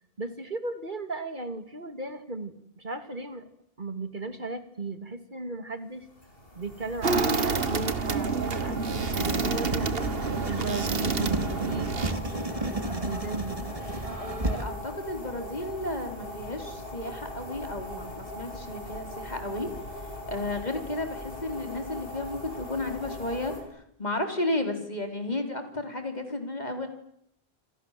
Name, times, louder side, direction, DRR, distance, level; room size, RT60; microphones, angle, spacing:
voice 1, 0.0-3.5 3.8-6.1 6.6-10.1 10.5-11.9 12.9-13.6, right 3 dB, 50° right, 10 dB, 2.4 m, -36 dB
sound 1, 6.2-23.6, left 1 dB, 60° left, 7.0 m, -40 dB
sound 2, 7.0-12.1, right 4 dB, 65° right, 1.7 m, -28 dB
Writing, 9.1-14.6, right 1 dB, 35° right, 2.8 m, -33 dB
voice 2, 14.2-26.9, left 2 dB, 40° left, 6 dB, 4.3 m, -33 dB
28.0 x 28.0 x 7.6 m, 0.74 s
omnidirectional pair, 1.1 m